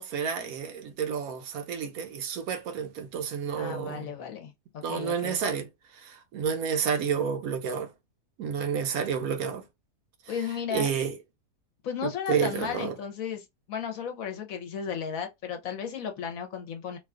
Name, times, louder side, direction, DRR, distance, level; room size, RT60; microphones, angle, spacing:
voice 1, 0.0-4.1 4.8-5.7 5.9-7.9 8.4-9.6 10.7-11.2 12.0-12.9, right 7 dB, 70° right, 1.0 m, -30 dB
voice 2, 3.5-5.4 10.3-10.9 11.8-17.0, left 7 dB, 65° left, 1.0 m, -34 dB
2.8 x 2.3 x 3.5 m
omnidirectional pair, 1.7 m